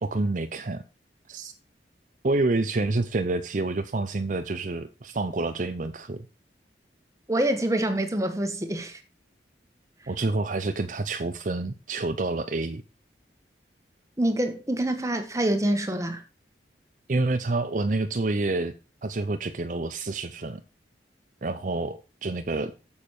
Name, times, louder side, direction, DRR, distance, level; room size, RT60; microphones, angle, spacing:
voice 1, 0.0-0.8 1.3-1.5 2.2-6.3 10.1-12.8 17.1-18.7 19.0-20.6 21.4-22.7, right 2 dB, 45° right, 0.6 m, -28 dB
voice 2, 7.3-9.0 14.2-16.2, right 1 dB, 20° right, 1.5 m, -26 dB
8.7 x 7.2 x 4.8 m
head